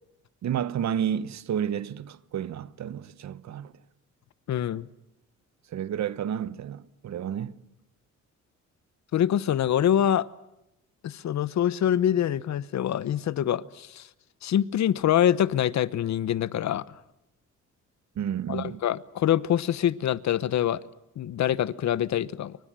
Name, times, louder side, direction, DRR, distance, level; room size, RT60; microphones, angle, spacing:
voice 1, 0.4-3.7 5.7-7.6 18.1-18.8, right 9 dB, 60° right, 1.2 m, -31 dB
voice 2, 4.5-4.9 9.1-10.3 11.0-14.1 14.4-16.9 18.5-20.8 21.2-22.6, left 10 dB, 65° left, 1.0 m, -25 dB
29.5 x 24.5 x 7.6 m
cardioid pair, 140°, 30 cm